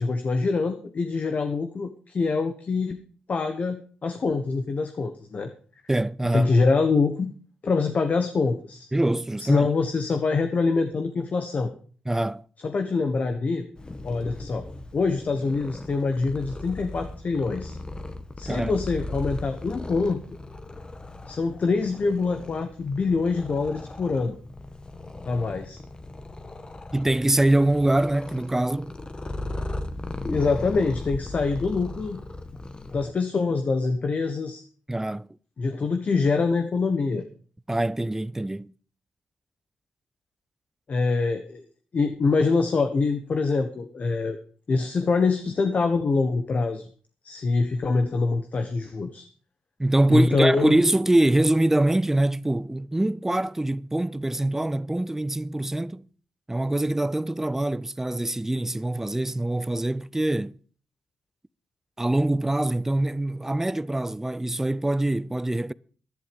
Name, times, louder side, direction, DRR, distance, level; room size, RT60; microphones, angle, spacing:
voice 1, 0.0-3.0 3.3-5.5 6.3-7.3 7.6-8.9 9.4-11.8 12.6-13.7 14.0-14.7 14.9-17.8 18.4-20.2 21.3-24.4 25.2-25.8 30.3-32.2 32.9-34.6 35.6-37.3 40.9-41.6 41.9-44.4 44.7-46.9 47.2-49.2 50.1-50.8, left 4 dB, 50° left, 1.2 m, -25 dB
voice 2, 5.9-6.5 8.9-9.7 12.1-12.4 18.5-18.7 26.9-28.9 34.9-35.3 37.7-38.7 49.8-56.1 56.5-60.6 62.0-65.7, right 1 dB, 10° right, 0.5 m, -24 dB
Purr, 13.7-33.1, left 2 dB, 25° left, 1.4 m, -37 dB
11.0 x 11.0 x 5.3 m
cardioid pair, 60°, 3 cm